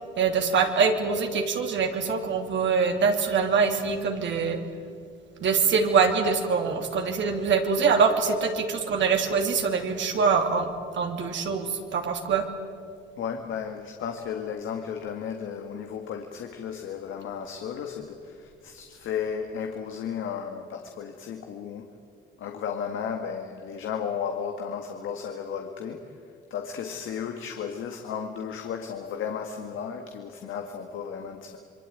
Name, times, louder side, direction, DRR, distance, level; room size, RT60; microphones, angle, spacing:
voice 1, 0.2-4.6 5.4-12.4, right 5 dB, 70° right, 4 dB, 3.0 m, -24 dB
voice 2, 13.2-21.8 22.4-26.0 26.5-31.6, left 7 dB, 80° left, 4 dB, 1.9 m, -34 dB
27.0 x 22.5 x 9.2 m, 2.3 s
cardioid pair, 90°, 20 cm